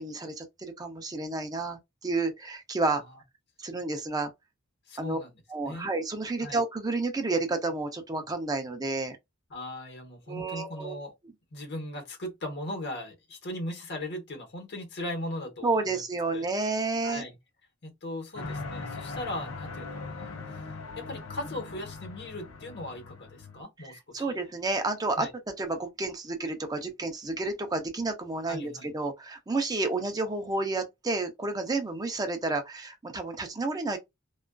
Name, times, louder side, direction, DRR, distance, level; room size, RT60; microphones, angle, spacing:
voice 1, 0.0-3.0 3.6-4.3 5.0-5.2 5.5-9.2 10.3-11.0 15.6-17.2 23.8-25.3 25.6-34.0, right 3 dB, 20° right, 0.5 m, -30 dB
voice 2, 4.9-5.9 6.4-6.6 9.5-11.1 11.5-16.0 16.3-16.5 17.0-17.4 17.8-24.4 25.2-25.3 28.5-28.9, left 1 dB, 55° left, 1.0 m, -38 dB
sound 1, 18.3-23.6, left 3 dB, 85° left, 0.6 m, -40 dB
2.3 x 2.3 x 2.2 m
head